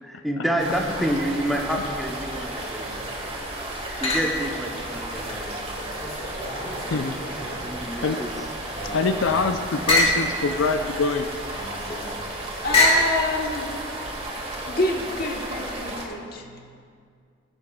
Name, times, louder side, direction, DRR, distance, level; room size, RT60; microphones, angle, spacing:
voice 1, 0.0-2.9 4.0-5.5 7.6-8.3, equal, ahead, 0 dB, 0.8 m, -28 dB
sound 1, 0.6-16.1, right 1 dB, 30° right, 1.6 m, -33 dB
sound 2, 2.5-3.1 4.0-4.6 5.1-7.8 8.2-13.2, left 1 dB, 30° left, 1.9 m, -27 dB
voice 2, 8.9-11.3, left 4 dB, 80° left, 8 dB, 0.4 m, -24 dB
voice 3, 12.6-13.8 14.5-16.7, left 2 dB, 50° left, 1 dB, 1.2 m, -28 dB
17.5 x 9.7 x 2.3 m, 2.2 s
head